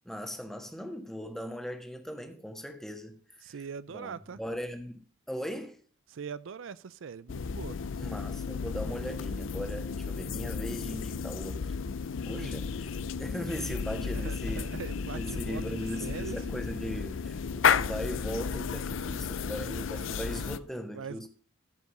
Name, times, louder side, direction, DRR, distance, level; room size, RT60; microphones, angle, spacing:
voice 1, 0.0-3.2 3.5-3.6 3.9-5.8 8.0-11.6 12.2-12.9 13.2-14.7 15.0-21.3, equal, ahead, 1.4 m, -39 dB
voice 2, 3.4-4.4 6.1-7.8 12.3-12.6 14.0-16.4 20.9-21.3, right 6 dB, 70° right, 0.4 m, -42 dB
sound 1, 7.3-20.6, left 6 dB, 70° left, 0.5 m, -33 dB
14.5 x 5.3 x 5.1 m
head